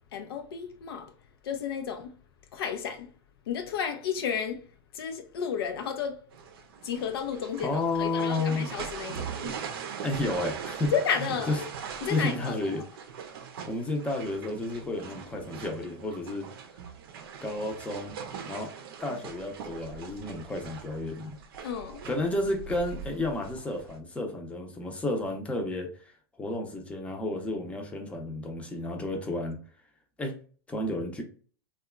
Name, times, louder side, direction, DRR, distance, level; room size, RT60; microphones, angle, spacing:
voice 1, 0.1-1.1 1.4-2.1 2.5-3.1 3.5-4.6 4.9-6.2 6.8-9.5 10.9-11.6 12.0-12.7 21.6-22.0, left 7 dB, 75° left, 0.5 m, -32 dB
sound 1, 6.3-24.0, right 6 dB, 70° right, 0.6 m, -41 dB
voice 2, 7.6-8.7 10.0-10.9 11.2-11.6 12.0-12.8 13.7-16.5 17.4-18.7 19.0-21.4 22.0-29.6 30.2-30.3 30.7-31.2, left 2 dB, 10° left, 0.6 m, -32 dB
2.7 x 2.3 x 2.3 m
hypercardioid pair, 105°, 13 cm